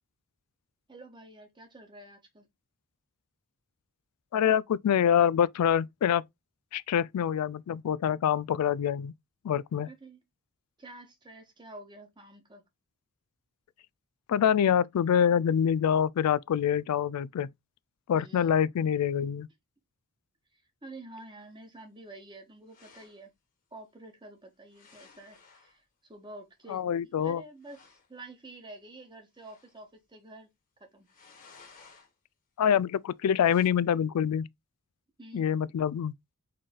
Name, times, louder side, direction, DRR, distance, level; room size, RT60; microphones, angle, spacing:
voice 1, 0.9-2.5 9.8-10.2 10.8-12.6 18.1-18.5 20.8-23.3 23.7-25.8 26.1-27.8 28.1-30.5 30.8-31.1 35.2-35.5, right 2 dB, 20° right, 1.3 m, -49 dB
voice 2, 4.3-6.2 6.7-9.1 9.4-9.9 14.3-17.5 18.1-19.5 26.7-27.4 32.6-34.5 35.3-36.1, left 8 dB, 90° left, 0.3 m, -25 dB
sound 1, 22.7-23.2 24.7-25.8 27.0-27.1 27.3-27.4 27.6-28.1 29.3-29.9 31.1-32.1 33.4-33.7, left 5 dB, 40° left, 1.4 m, -56 dB
4.3 x 3.2 x 3.7 m
head